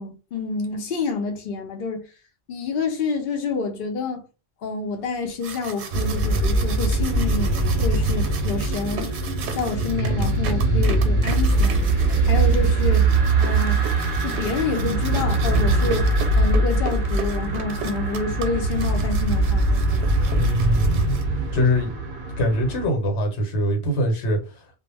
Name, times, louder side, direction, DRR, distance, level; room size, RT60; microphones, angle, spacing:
voice 1, 0.0-2.0 2.5-4.2 4.6-9.1 9.5-11.8 12.2-13.1 13.4-13.8 14.2-16.1 16.4-20.1, left 4 dB, 60° left, 0.7 m, -28 dB
sound 1, 5.2-21.6, right 6 dB, 85° right, 0.9 m, -36 dB
sound 2, 5.9-22.9, right 2 dB, 55° right, 0.6 m, -22 dB
sound 3, 7.0-19.9, right 1 dB, 15° left, 0.4 m, -37 dB
voice 2, 20.4-21.2 21.5-21.9 22.4-24.8, equal, 90° left, 1.1 m, -23 dB
2.1 x 2.1 x 3.2 m
omnidirectional pair, 1.1 m